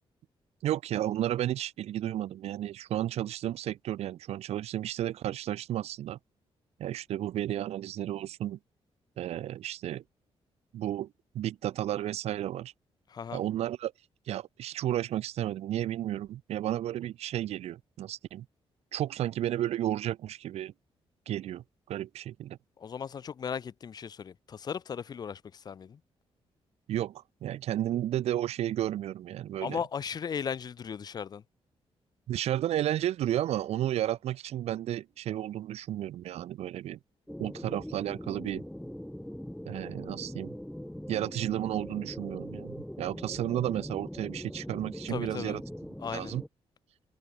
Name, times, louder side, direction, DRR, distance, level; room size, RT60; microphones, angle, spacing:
voice 1, 0.6-6.2 6.8-8.6 9.2-10.0 10.7-12.7 13.3-13.9 14.3-18.5 18.9-20.7 21.3-22.6 26.9-29.8 32.3-37.0 37.4-38.6 39.7-40.5 41.1-45.6 46.1-46.4, right 12 dB, 80° right, 0.7 m, -32 dB
voice 2, 13.1-13.4 22.8-26.0 29.6-31.4 45.1-45.6 46.0-46.3, left 7 dB, 40° left, 1.8 m, -37 dB
sound 1, 37.3-46.5, equal, ahead, 1.4 m, -41 dB
wide cardioid pair, 180°, 11 cm